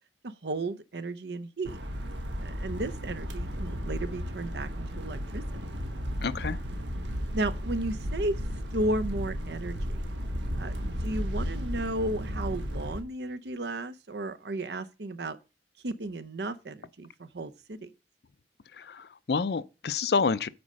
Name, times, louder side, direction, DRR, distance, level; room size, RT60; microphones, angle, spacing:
voice 1, 0.2-1.8 2.4-5.7 7.3-8.4 8.7-10.0 10.6-15.4 15.8-17.9, right 2 dB, 65° right, 0.7 m, -34 dB
sound 1, 1.7-13.0, equal, 85° right, 1.3 m, -34 dB
voice 2, 6.2-6.6 18.7-20.5, left 5 dB, 60° left, 0.4 m, -28 dB
8.7 x 4.3 x 6.3 m
head